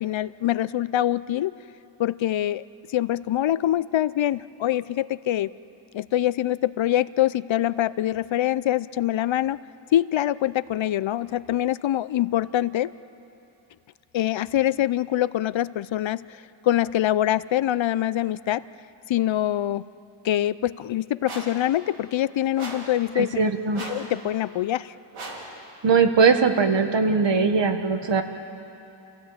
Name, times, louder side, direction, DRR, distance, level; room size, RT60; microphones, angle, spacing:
voice 1, 0.0-1.5 2.0-2.6 2.9-5.5 5.9-9.6 9.9-12.9 14.1-18.6 19.1-19.9 20.2-23.5 23.8-25.0, left 12 dB, 70° left, 17 dB, 0.6 m, -24 dB
sound 1, 21.2-21.6 22.6-23.0 23.7-24.1 25.1-25.5, right 2 dB, 90° right, 3.6 m, -37 dB
voice 2, 23.2-23.8 25.8-28.2, right 5 dB, 60° right, 7 dB, 1.6 m, -20 dB
28.0 x 16.5 x 8.8 m, 2.8 s
wide cardioid pair, 115°, 49 cm